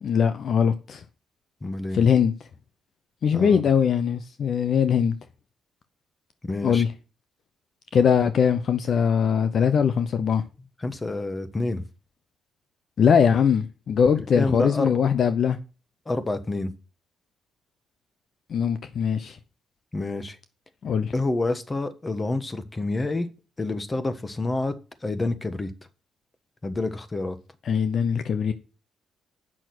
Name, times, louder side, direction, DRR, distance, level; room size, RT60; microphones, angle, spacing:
voice 1, 0.0-1.0 1.9-2.3 3.2-5.1 6.6-6.9 7.9-10.4 13.0-15.6 18.5-19.4 20.8-21.1 27.7-28.5, left 7 dB, 55° left, 0.8 m, -21 dB
voice 2, 1.6-2.0 3.3-3.6 6.4-6.8 10.8-11.8 14.2-15.0 16.0-16.7 19.9-20.4 21.1-23.3 23.6-24.8 25.0-25.7 26.6-27.4, left 2 dB, 25° left, 1.3 m, -28 dB
8.6 x 6.2 x 6.1 m
cardioid pair, 90°, 0 cm